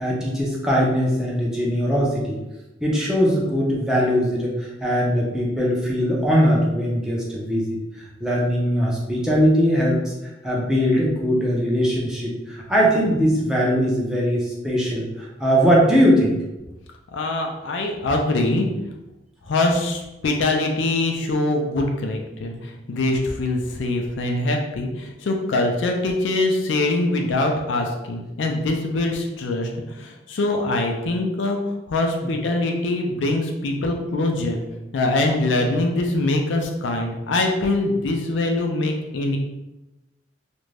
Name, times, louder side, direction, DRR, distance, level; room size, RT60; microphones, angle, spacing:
voice 1, 0.0-2.4 2.8-10.0 10.4-16.3 32.2-32.3, equal, 5° right, -4 dB, 0.5 m, -20 dB
voice 2, 17.1-18.7 19.4-34.6 34.9-39.4, left 2 dB, 75° left, 3 dB, 0.4 m, -23 dB
2.5 x 2.1 x 3.2 m, 0.99 s
head